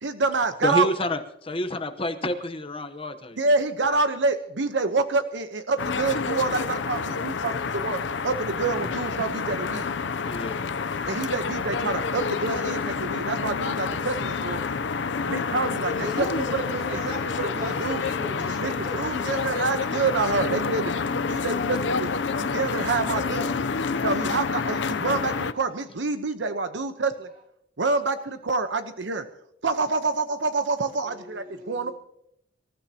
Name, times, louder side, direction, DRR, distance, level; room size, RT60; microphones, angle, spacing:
voice 1, 0.0-0.9 3.4-9.9 11.1-14.6 15.3-17.0 17.4-18.0 18.6-22.1 22.4-23.5 24.0-27.3 27.8-29.3 29.6-31.9, right 3 dB, 85° right, 9 dB, 1.0 m, -27 dB
voice 2, 0.6-3.4 10.3-10.7, left 1 dB, 30° left, 7 dB, 1.0 m, -28 dB
sound 1, 5.8-25.5, left 5 dB, 85° left, 0.6 m, -28 dB
voice 3, 15.9-19.7 31.0-31.9, left 1 dB, 45° right, -1 dB, 3.5 m, -37 dB
25.5 x 14.0 x 2.9 m, 0.76 s
head